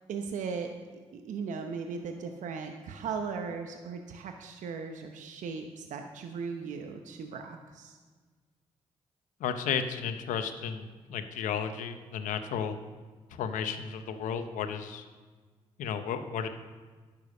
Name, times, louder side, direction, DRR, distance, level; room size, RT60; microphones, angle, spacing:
voice 1, 0.1-8.0, right 5 dB, 75° right, 5 dB, 0.9 m, -38 dB
voice 2, 9.4-12.8 13.3-15.0 15.8-16.5, left 7 dB, 85° left, 9 dB, 0.9 m, -33 dB
10.5 x 6.9 x 6.5 m, 1.4 s
supercardioid pair, 45°, 13 cm